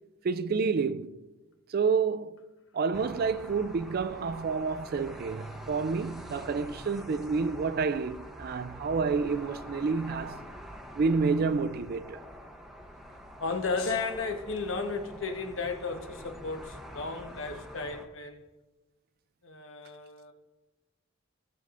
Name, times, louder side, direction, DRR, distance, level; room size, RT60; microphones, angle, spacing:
voice 1, 0.2-1.2 1.7-2.4 2.7-10.5 10.9-12.2, right 5 dB, 50° right, 0.4 m, -29 dB
sound 1, 2.9-18.1, equal, ahead, 0.8 m, -45 dB
voice 2, 13.4-18.5 19.4-20.3, left 4 dB, 70° left, 1.1 m, -34 dB
17.5 x 6.8 x 2.5 m
head